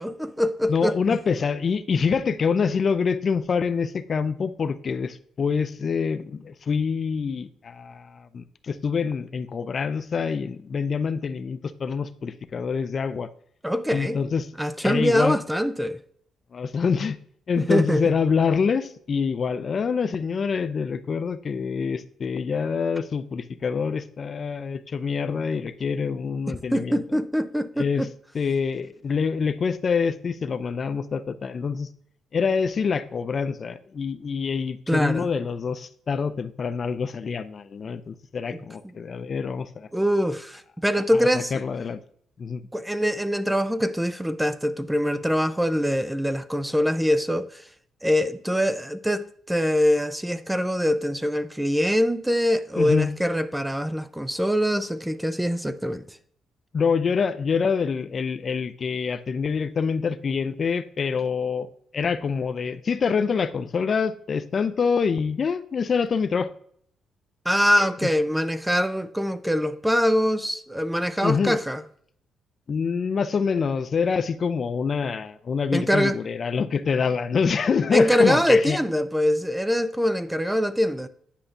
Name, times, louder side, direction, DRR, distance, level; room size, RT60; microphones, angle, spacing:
voice 1, 0.0-1.0 13.6-14.2 14.6-16.0 17.6-18.0 26.5-28.1 34.9-35.3 38.5-38.6 39.9-41.5 42.7-47.6 48.0-56.2 67.5-71.8 75.7-76.2 77.9-81.1, equal, 5° right, 0.5 m, -23 dB
voice 2, 0.7-13.3 13.9-14.5 14.8-15.4 16.5-17.2 17.5-27.0 27.8-28.1 28.3-31.9 32.3-39.9 41.1-42.0 42.4-42.6 52.8-53.1 56.7-61.7 61.9-66.5 67.8-68.1 71.2-71.6 72.7-78.8, left 5 dB, 45° left, 0.5 m, -26 dB
9.9 x 5.6 x 2.6 m
cardioid pair, 90°, 0 cm